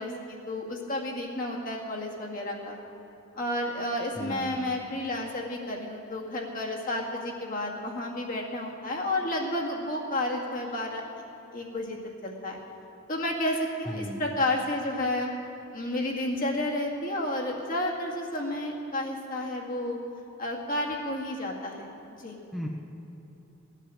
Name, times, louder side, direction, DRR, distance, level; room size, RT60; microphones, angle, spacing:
voice 1, 0.0-2.8 3.3-11.0 11.5-12.6 13.1-15.3 15.7-20.0 20.4-21.9 22.2-22.4, left 1 dB, 40° left, -1 dB, 2.1 m, -31 dB
voice 2, 4.2-4.6 13.9-14.2 22.5-22.7, equal, ahead, -2 dB, 0.9 m, -35 dB
17.5 x 10.0 x 7.6 m, 2.9 s
head